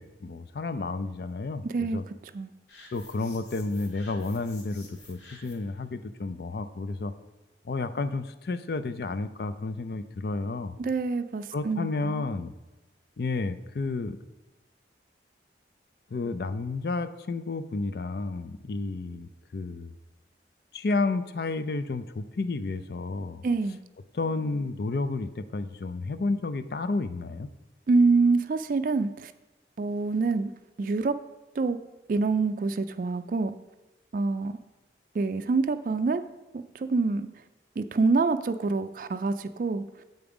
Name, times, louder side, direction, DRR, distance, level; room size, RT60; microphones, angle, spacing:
voice 1, 0.0-2.0 2.9-7.1 7.6-10.8 11.5-12.5 13.2-14.2 16.1-19.9 20.7-23.4 24.1-27.5, left 3 dB, 60° left, 11 dB, 0.4 m, -31 dB
voice 2, 1.6-2.0 2.3-2.5 10.8-12.2 23.4-23.8 27.9-29.3 29.8-30.5 30.8-31.1 31.6-31.8 32.1-33.6 34.1-34.6 35.2-36.2 36.7-37.3 37.8-39.8, right 3 dB, 50° right, 10 dB, 0.3 m, -26 dB
sound 1, 2.7-5.8, left 2 dB, 90° left, 2.0 m, -51 dB
7.9 x 5.3 x 4.9 m, 1.1 s
head